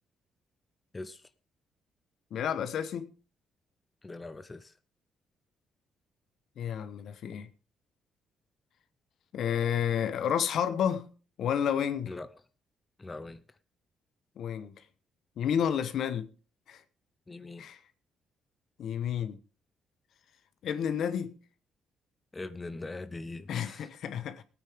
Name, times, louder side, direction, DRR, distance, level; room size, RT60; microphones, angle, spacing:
voice 1, 2.3-3.1 6.6-7.5 9.3-11.1 11.4-12.1 14.4-14.7 15.4-16.3 16.7-16.8 17.6-17.8 18.8-19.4 20.6-21.3 23.5-24.4, left 8 dB, 70° left, 1.3 m, -30 dB
voice 2, 4.0-4.7 12.1-12.3 13.0-13.4 17.3-17.6 22.3-23.9, left 2 dB, 20° left, 0.8 m, -41 dB
19.0 x 9.3 x 3.7 m
cardioid pair, 90°, 0 cm